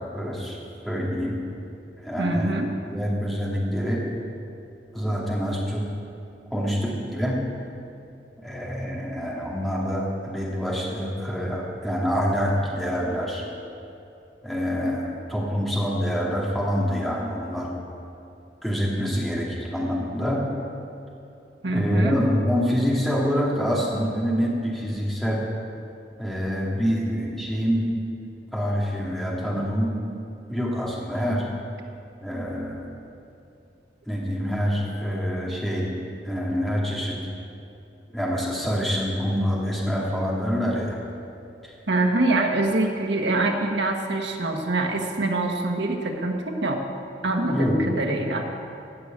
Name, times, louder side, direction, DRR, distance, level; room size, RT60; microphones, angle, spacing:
voice 1, 0.1-0.6 0.8-1.4 2.0-2.5 2.9-4.0 4.9-5.9 6.5-7.4 8.4-13.4 14.4-17.7 18.6-20.5 21.7-25.5 26.2-27.9 28.5-29.9 30.5-31.5 32.2-32.8 34.1-35.9 36.2-37.2 38.1-41.0 41.6-41.7 47.5-47.8, equal, ahead, -5 dB, 2.5 m, -26 dB
voice 2, 2.2-2.7 21.6-22.2 41.9-46.8 47.2-48.5, right 2 dB, 85° right, 3 dB, 1.4 m, -24 dB
15.0 x 6.7 x 8.6 m, 2.7 s
head